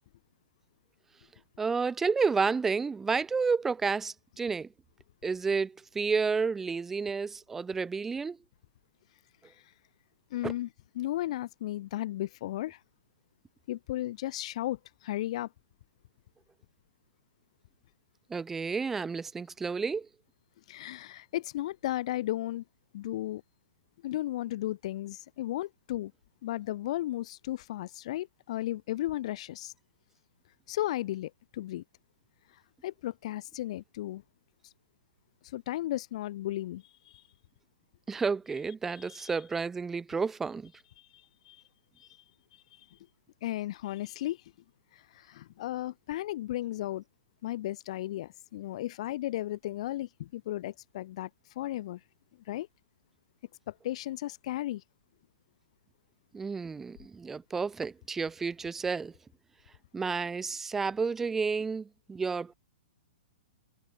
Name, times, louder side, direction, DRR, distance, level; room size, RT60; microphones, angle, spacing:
voice 1, 1.6-4.7 5.2-8.4 10.4-10.5 18.3-20.1 38.1-40.7 56.3-59.1 59.9-62.5, right 5 dB, 5° right, 0.6 m, -31 dB
voice 2, 10.3-10.7 11.0-12.8 13.7-15.5 20.7-22.6 22.9-23.4 24.0-26.1 26.4-29.7 30.7-31.8 32.8-34.2 35.4-37.2 39.0-39.3 41.0-41.6 42.0-42.1 42.8-43.0 43.4-44.4 44.9-47.0 47.4-51.3 51.6-52.0 52.5-52.7 53.7-54.8, left 14 dB, 35° left, 2.0 m, -35 dB
hypercardioid pair, 180°, 5 cm